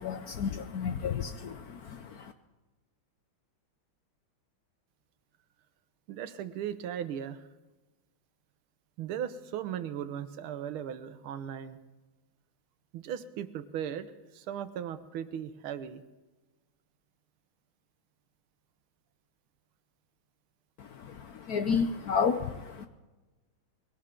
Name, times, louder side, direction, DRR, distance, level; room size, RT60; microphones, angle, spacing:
voice 1, 0.0-2.3 20.8-22.9, left 6 dB, 65° left, 8 dB, 1.0 m, -32 dB
voice 2, 6.1-7.4 9.0-11.8 12.9-14.1 14.3-16.0, right 9 dB, 85° right, 12 dB, 1.7 m, -37 dB
21.5 x 17.5 x 3.8 m, 1.2 s
omnidirectional pair, 2.3 m